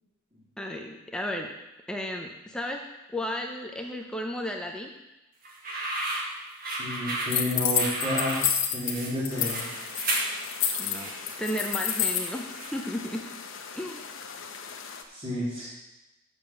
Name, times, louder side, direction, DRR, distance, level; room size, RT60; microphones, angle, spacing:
voice 1, 0.6-1.5 1.9-2.8 3.1-4.9 10.8-11.1 11.4-13.2 13.7-14.1, left 1 dB, 5° left, 1 dB, 0.6 m, -33 dB
sound 1, 5.4-13.0, right 2 dB, 45° right, 1.8 m, -34 dB
voice 2, 6.8-8.4 8.7-9.6 15.1-15.7, left 1 dB, 30° right, -10 dB, 2.8 m, -30 dB
sound 2, 7.3-8.9 9.2-9.6 9.9-12.3, left 9 dB, 75° left, 1.1 m, -27 dB
sound 3, 9.3-15.0, left 5 dB, 90° left, 0.9 m, -42 dB
7.3 x 6.9 x 6.8 m, 0.98 s
head